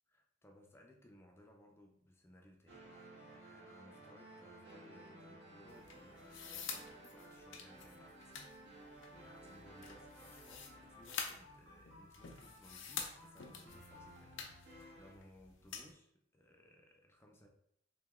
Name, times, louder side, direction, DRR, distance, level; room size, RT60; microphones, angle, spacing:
voice 1, 0.1-2.8 3.3-17.5, left 1 dB, 15° left, 1 dB, 0.4 m, -63 dB
sound 1, 2.7-15.1, right 1 dB, 75° right, 1.3 m, -57 dB
sound 2, 5.7-15.9, left 6 dB, 80° left, 0.5 m, -49 dB
3.0 x 2.8 x 3.5 m, 0.73 s
head